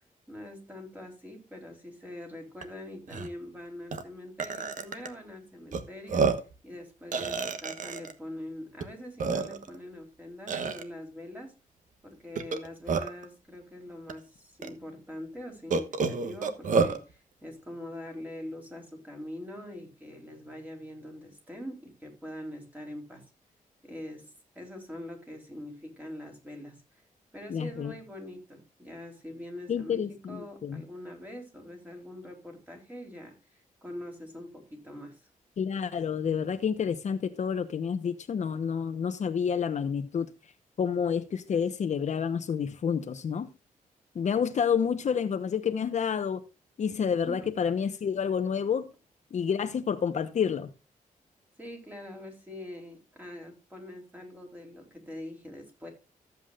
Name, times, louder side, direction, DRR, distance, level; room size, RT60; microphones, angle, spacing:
voice 1, 0.3-11.5 12.0-23.2 23.8-24.3 24.6-26.8 27.3-33.4 33.8-35.2 47.3-47.6 51.6-55.9, left 1 dB, 10° right, 3.6 m, -43 dB
Burping eructation, 2.6-2.7 3.1-3.3 3.9-4.0 4.4-5.1 5.7-5.8 6.1-6.5 7.1-8.1 8.8-8.9 9.2-9.8 10.5-10.8 12.4-13.3 14.1-14.2 14.6-14.7 15.7-17.0, right 4 dB, 65° right, 1.2 m, -28 dB
voice 2, 27.5-27.9 29.7-30.8 35.6-40.3 40.8-43.5 44.1-46.4 46.8-48.9 49.3-50.7, left 7 dB, 55° left, 0.9 m, -29 dB
14.5 x 8.2 x 2.4 m
wide cardioid pair, 130°, 14 cm